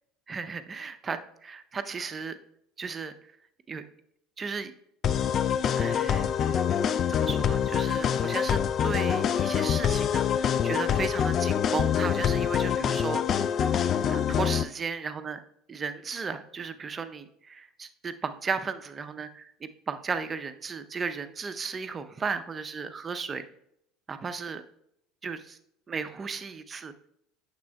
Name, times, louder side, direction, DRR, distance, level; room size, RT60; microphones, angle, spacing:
voice 1, 0.3-2.4 2.8-3.1 3.7-3.8 4.4-4.7 5.2-5.3 5.8-6.3 7.1-13.6 14.1-15.4 15.7-23.4 24.1-24.6 25.2-25.6 25.9-26.9, right 5 dB, 30° right, 10 dB, 0.5 m, -35 dB
sound 1, 5.0-14.6, left 8 dB, 40° left, 0.3 m, -25 dB
9.3 x 6.7 x 2.2 m, 0.75 s
figure-of-eight pair, 70°, 0 cm